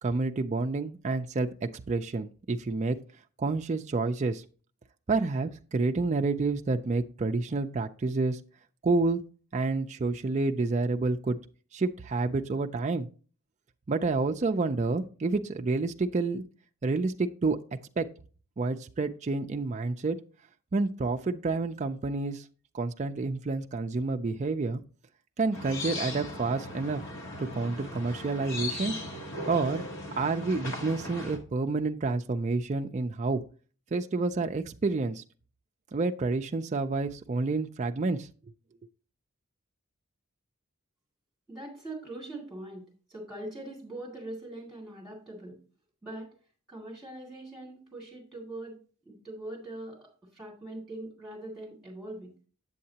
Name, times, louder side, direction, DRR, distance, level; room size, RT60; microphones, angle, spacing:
voice 1, 0.0-1.5 1.9-3.0 3.4-4.4 5.1-8.4 8.8-9.2 9.5-11.4 11.7-13.1 13.9-16.4 16.8-17.6 18.0-18.1 18.6-20.2 20.7-22.4 22.7-24.8 25.4-27.0 27.4-29.0 29.5-29.8 30.1-33.4 33.9-35.2 35.9-38.3, right 3 dB, 35° right, 5 dB, 0.4 m, -29 dB
sound 1, 25.5-31.4, left 1 dB, 60° left, 1.6 m, -38 dB
voice 2, 41.5-45.6 46.0-46.3 46.7-48.8 49.1-52.3, right 1 dB, ahead, -2 dB, 2.1 m, -42 dB
7.8 x 7.5 x 2.8 m, 0.38 s
head